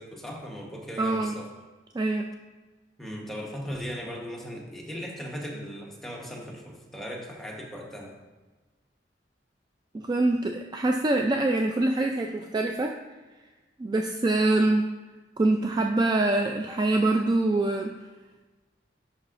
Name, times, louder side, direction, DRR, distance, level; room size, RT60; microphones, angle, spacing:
voice 1, 0.0-1.5 3.0-8.2, equal, ahead, -2 dB, 1.1 m, -38 dB
voice 2, 1.0-1.3 1.9-2.2 9.9-12.9 13.8-14.8 15.4-17.9, right 2 dB, 25° right, 3 dB, 0.3 m, -24 dB
10.5 x 5.5 x 2.5 m, 1.2 s
head